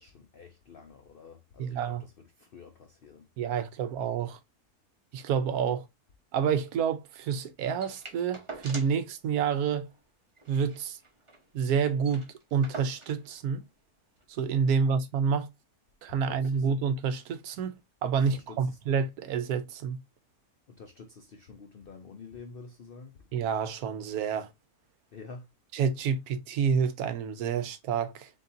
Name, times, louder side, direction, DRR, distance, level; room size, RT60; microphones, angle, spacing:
voice 1, 0.0-1.8 2.4-3.2 16.3-16.6 18.3-18.6 20.7-23.1 25.1-25.5, left 4 dB, 70° left, 0.5 m, -48 dB
voice 2, 1.6-2.0 3.4-4.4 5.1-5.8 6.3-9.9 10.5-11.0 11.5-13.6 14.3-15.5 16.0-20.0 23.3-24.5 25.7-28.3, right 6 dB, 75° right, 1.1 m, -28 dB
sound 1, 7.8-9.1 9.4-9.5 9.8-10.0 10.4-11.5 11.7-11.8 12.0-13.3 14.2-14.3, right 3 dB, 25° right, 0.9 m, -45 dB
4.2 x 3.5 x 2.6 m
omnidirectional pair, 1.6 m